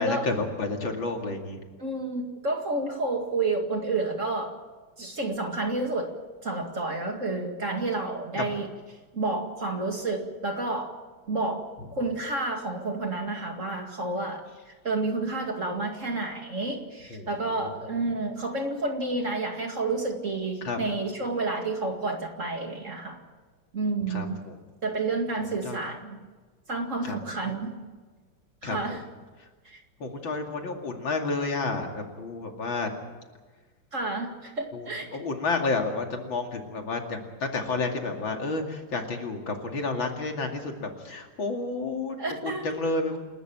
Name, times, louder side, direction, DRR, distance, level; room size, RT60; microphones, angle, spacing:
voice 1, 0.0-1.6 8.4-8.5 17.1-17.3 17.6-17.7 20.6-20.8 24.1-24.6 25.6-25.8 27.0-27.2 28.6-29.0 30.0-32.9 34.7-42.2 42.4-43.2, left 3 dB, 65° left, 3 dB, 3.2 m, -30 dB
voice 2, 1.8-4.5 5.0-6.1 6.4-8.7 9.1-10.9 11.3-11.6 11.9-14.4 14.8-23.2 23.7-24.4 24.8-26.2 26.7-27.7 28.6-29.0 29.7-29.8 33.9-35.2 42.2-42.7, right 2 dB, 35° right, 3 dB, 2.4 m, -30 dB
28.5 x 13.0 x 9.1 m, 1.3 s
omnidirectional pair, 2.4 m